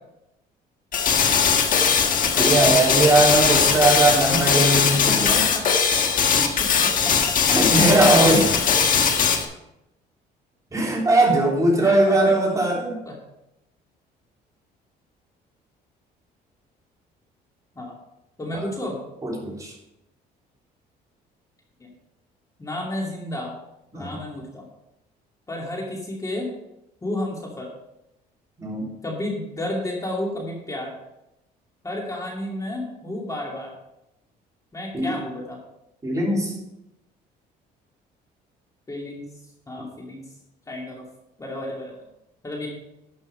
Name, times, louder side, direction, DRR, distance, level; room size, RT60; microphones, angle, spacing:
sound 1, 0.9-9.4, left 6 dB, 55° left, 1.5 m, -20 dB
voice 1, 2.3-5.5 7.5-8.6 10.7-13.0 18.5-18.6 19.2-19.7 23.9-24.2 28.6-28.9 34.9-35.1 36.0-36.5, right 2 dB, 20° right, -2 dB, 3.4 m, -20 dB
voice 2, 4.9-5.7 6.4-7.3 11.8-12.4 13.0-13.1 17.8-17.9 18.4-19.0 21.8-21.9 22.6-23.5 23.9-24.7 25.5-26.5 27.0-27.7 29.0-30.9 31.8-33.7 34.7-35.6 38.9-39.3 39.7-40.2 40.7-41.0 41.4-42.0 42.4-42.7, left 1 dB, 20° left, -2 dB, 2.6 m, -32 dB
12.0 x 6.2 x 5.4 m, 0.88 s
cardioid pair, 110°, 17 cm